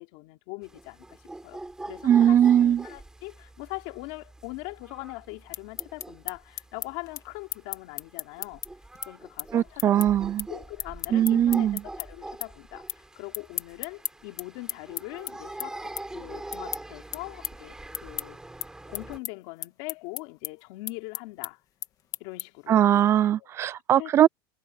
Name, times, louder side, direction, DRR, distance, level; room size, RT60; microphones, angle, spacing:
voice 1, 0.0-8.6 9.1-9.9 10.5-15.8 16.1-17.8 18.0-18.4 18.9-21.6 22.2-22.8 23.4-23.5 24.0-24.3, left 24 dB, 55° left, 3.4 m, -41 dB
sound 1, 0.6-19.2, right 2 dB, 5° right, 3.7 m, -44 dB
voice 2, 2.0-2.9 9.5-10.5 11.1-11.8 22.7-24.3, right 10 dB, 20° right, 0.4 m, -20 dB
sound 2, 5.3-12.1 12.4-13.0 13.3-22.7, left 11 dB, 30° left, 1.7 m, -36 dB
supercardioid pair, 165°, 12 cm